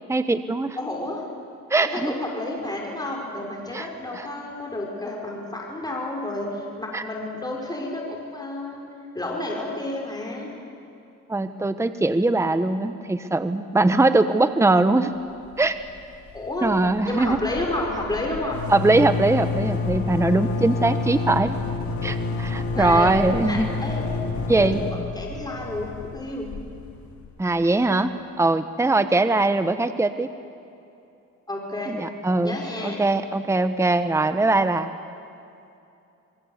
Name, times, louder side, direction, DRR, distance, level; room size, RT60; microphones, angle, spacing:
voice 1, 0.1-0.8 1.7-2.1 3.7-3.9 4.1-4.3 6.9-7.0 11.3-15.1 15.6-15.8 16.6-17.4 18.7-21.6 22.0-23.7 24.5-24.8 27.4-28.1 28.4-30.3 31.9-32.6 32.8-34.9, right 2 dB, 10° right, 10 dB, 1.1 m, -21 dB
voice 2, 0.8-1.2 1.7-8.8 9.1-10.5 16.3-16.7 17.0-18.6 22.8-24.1 24.5-26.5 31.5-32.0 32.4-33.0, left 1 dB, 15° left, -1 dB, 5.6 m, -30 dB
sound 1, 15.5-16.0 16.3-16.4 16.6-27.3, left 3 dB, 70° left, 3.9 m, -29 dB
27.5 x 22.5 x 8.2 m, 2.7 s
cardioid pair, 90°, 30 cm